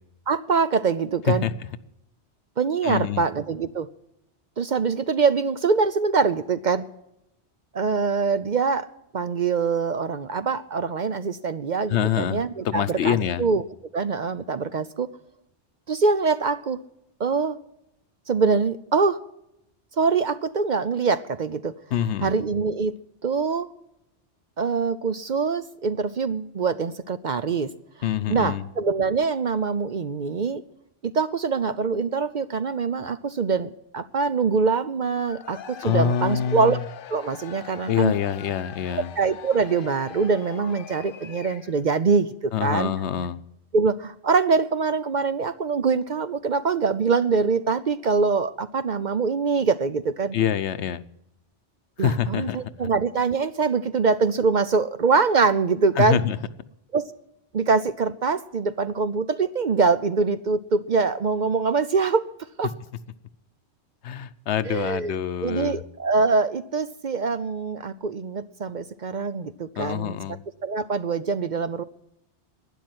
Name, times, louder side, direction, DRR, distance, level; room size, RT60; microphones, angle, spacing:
voice 1, 0.3-1.5 2.6-3.9 4.6-6.8 7.7-8.9 9.1-13.6 13.9-15.1 15.9-16.8 17.2-17.6 18.3-19.2 20.0-21.7 22.2-22.9 23.2-23.7 24.6-27.7 28.0-30.6 31.0-36.8 37.1-38.1 38.9-42.9 43.7-50.4 52.0-56.2 56.9-57.1 57.5-62.3 62.6-62.7 64.6-65.2 65.4-70.2 70.6-71.8, right 4 dB, 50° right, 13 dB, 0.7 m, -24 dB
voice 2, 2.8-3.3 11.9-13.4 21.9-22.3 28.0-28.7 35.8-36.8 37.9-39.1 42.5-43.4 50.3-51.0 52.0-52.6 56.0-56.4 64.0-65.8 69.8-70.4, left 9 dB, 75° left, 14 dB, 1.0 m, -25 dB
Cheering / Crowd, 35.2-41.9, left 8 dB, 55° left, 0.8 m, -42 dB
12.0 x 10.0 x 9.4 m, 0.85 s
omnidirectional pair, 1.2 m